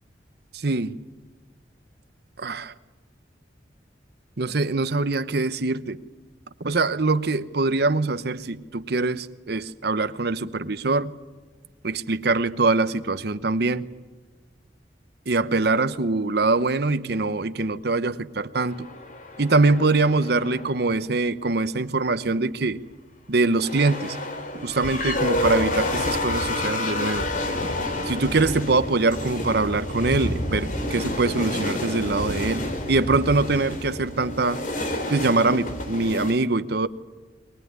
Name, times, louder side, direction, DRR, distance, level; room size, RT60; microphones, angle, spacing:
voice 1, 0.5-1.0 2.4-2.7 4.4-6.0 6.6-11.2 11.8-13.9 15.3-18.9 19.4-22.8 23.3-24.2 24.6-27.3 28.0-34.6 35.1-36.9, right 3 dB, 65° right, 0.9 m, -23 dB
sound 1, 18.6-20.9 23.5-36.3, left 1 dB, 50° left, 3.1 m, -29 dB
23.0 x 20.0 x 9.6 m
head